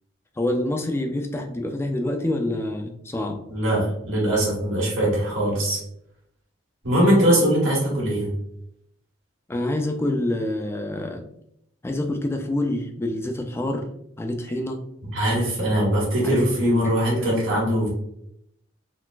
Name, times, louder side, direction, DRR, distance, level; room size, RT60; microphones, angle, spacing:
voice 1, 0.4-3.4 9.5-11.2 11.8-13.9 14.2-14.8 16.2-17.3, left 1 dB, 15° left, 4 dB, 0.3 m, -26 dB
voice 2, 3.5-5.8 6.8-8.3 15.1-17.9, right 1 dB, 80° right, -5 dB, 1.3 m, -21 dB
3.8 x 2.4 x 2.3 m, 0.76 s
head